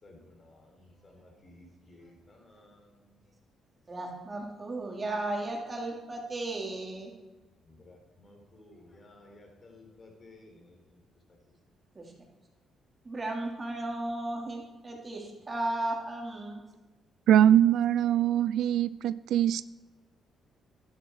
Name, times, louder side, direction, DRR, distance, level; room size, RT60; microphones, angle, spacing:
voice 1, 0.0-3.1 7.7-11.0, left 2 dB, 35° left, 2 dB, 4.2 m, -55 dB
voice 2, 3.9-7.1 11.9-12.0 13.0-16.6, right 2 dB, 30° right, -1 dB, 3.5 m, -35 dB
voice 3, 17.3-19.7, right 10 dB, 80° right, 17 dB, 0.3 m, -22 dB
12.0 x 11.5 x 4.8 m, 1.2 s
cardioid pair, 90°, 0 cm